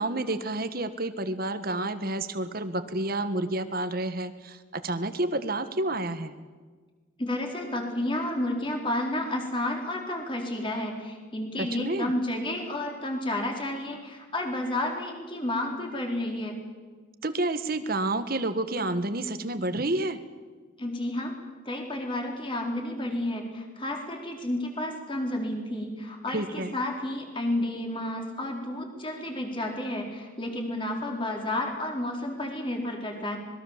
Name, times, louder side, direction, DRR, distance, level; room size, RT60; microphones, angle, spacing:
voice 1, 0.0-6.3 11.6-12.1 17.2-20.2 26.3-26.8, right 2 dB, 50° right, 10 dB, 1.6 m, -29 dB
voice 2, 7.2-16.6 20.8-21.3 21.6-33.4, left 1 dB, 25° left, 2 dB, 4.3 m, -31 dB
26.0 x 21.5 x 7.5 m, 1.4 s
head